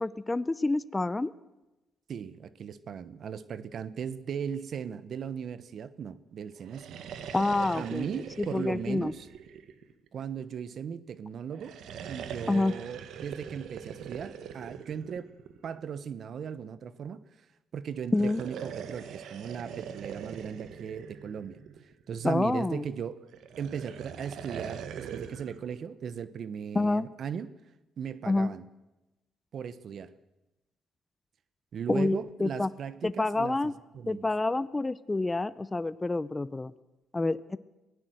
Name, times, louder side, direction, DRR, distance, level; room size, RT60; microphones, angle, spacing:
voice 1, 0.0-1.3 7.3-8.1 8.4-9.1 12.5-12.7 18.1-18.4 22.2-22.8 26.7-27.1 28.3-28.5 31.9-32.7 33.0-33.7 34.1-36.7 37.1-37.6, left 2 dB, 20° left, 16 dB, 0.7 m, -28 dB
voice 2, 2.1-7.0 7.8-9.3 10.1-11.8 12.1-15.3 15.6-17.2 17.7-23.2 23.6-27.5 28.0-28.6 29.5-30.1 31.7-33.6 33.9-34.3, right 7 dB, 60° right, 16 dB, 1.1 m, -37 dB
sound 1, 6.6-10.2 11.5-15.8 18.0-22.0 23.3-25.6, right 8 dB, 75° right, 1.7 m, -42 dB
23.0 x 16.5 x 7.9 m, 1.0 s
cardioid pair, 90°, 0 cm